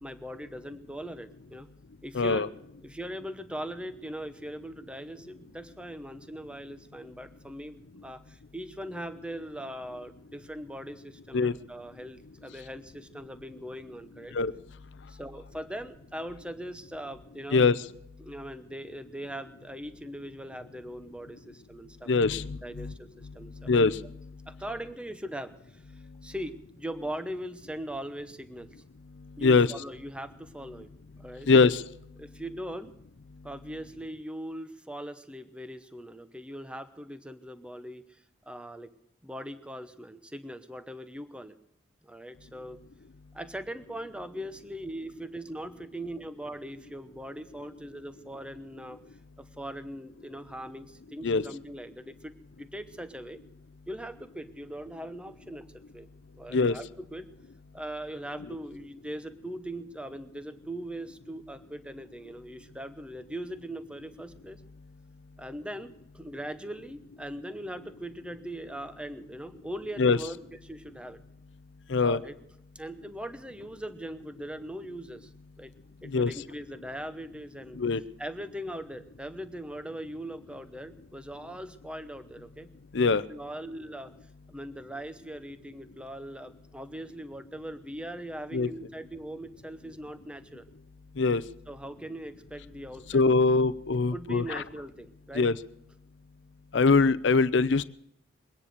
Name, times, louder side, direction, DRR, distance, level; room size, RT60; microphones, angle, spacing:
voice 1, 0.0-1.7 2.0-2.5 2.8-14.3 15.1-17.6 18.2-23.7 24.5-28.7 29.4-30.9 31.2-31.5 32.2-32.9 33.4-38.9 39.2-41.6 42.0-42.8 43.3-49.0 49.4-53.4 53.9-55.7 55.9-56.1 56.4-57.3 57.7-64.6 65.4-70.4 70.6-71.2 72.0-72.4 72.7-75.3 75.6-75.7 76.0-77.8 78.2-82.7 83.3-84.2 84.5-90.7 91.7-93.5 94.1-95.5, right 1 dB, 5° right, 11 dB, 0.9 m, -40 dB
voice 2, 2.1-2.5 11.3-11.5 14.3-14.5 17.5-17.8 22.1-22.9 23.7-24.0 29.4-29.7 31.5-31.8 51.2-51.4 56.5-56.8 70.0-70.2 71.9-72.2 76.1-76.3 77.8-78.0 82.9-83.2 88.5-88.7 91.2-91.4 93.1-94.6 95.3-95.6 96.7-97.8, left 4 dB, 70° left, 13 dB, 0.6 m, -22 dB
22.0 x 10.0 x 6.6 m, 0.78 s
head